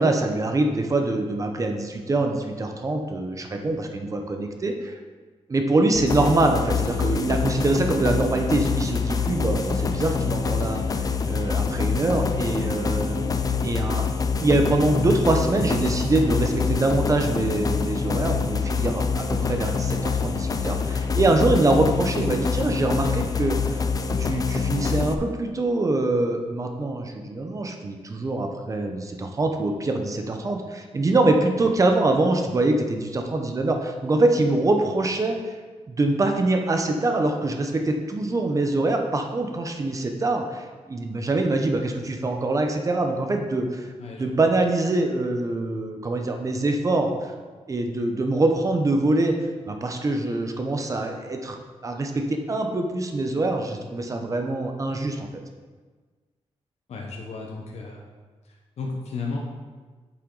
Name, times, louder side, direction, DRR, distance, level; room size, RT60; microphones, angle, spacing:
voice 1, 0.0-5.0 5.5-14.0 14.4-23.8 24.2-35.4 35.9-43.9 44.1-47.1 47.7-49.4 49.7-51.6 51.8-55.3, right 2 dB, 30° right, 4 dB, 0.8 m, -24 dB
sound 1, 5.9-25.1, left 5 dB, 30° left, 0.5 m, -25 dB
voice 2, 44.0-44.4 56.9-58.0 58.8-59.4, left 4 dB, 70° left, -1 dB, 1.0 m, -33 dB
8.4 x 7.6 x 3.9 m, 1.4 s
wide cardioid pair, 170°, 11 cm